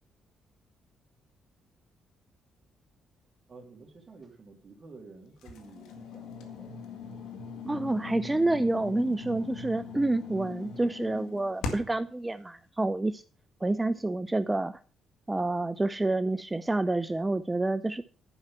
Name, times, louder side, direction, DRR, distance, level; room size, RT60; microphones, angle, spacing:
voice 1, 3.5-6.8, right 3 dB, 35° right, 2 dB, 2.8 m, -51 dB
sound 1, 5.4-12.1, left 4 dB, 85° left, 1.9 m, -40 dB
voice 2, 7.6-13.2 13.6-14.8 15.3-18.0, right 2 dB, 15° right, 12 dB, 0.5 m, -28 dB
11.0 x 5.7 x 7.3 m, 0.40 s
cardioid pair, 90°, 0 cm